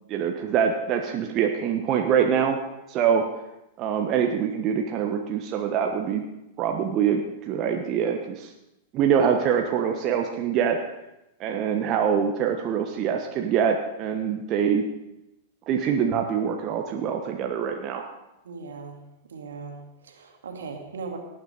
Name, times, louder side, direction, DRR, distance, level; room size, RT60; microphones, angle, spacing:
voice 1, 0.1-2.6 2.9-3.2 3.8-6.2 6.6-8.5 8.9-10.8 11.4-14.8 15.7-18.1, right 7 dB, 40° right, 3 dB, 1.3 m, -24 dB
voice 2, 18.4-19.0 19.3-21.2, right 4 dB, 75° right, 2 dB, 2.3 m, -38 dB
18.5 x 9.3 x 4.1 m, 0.92 s
figure-of-eight pair, 95°, 0 cm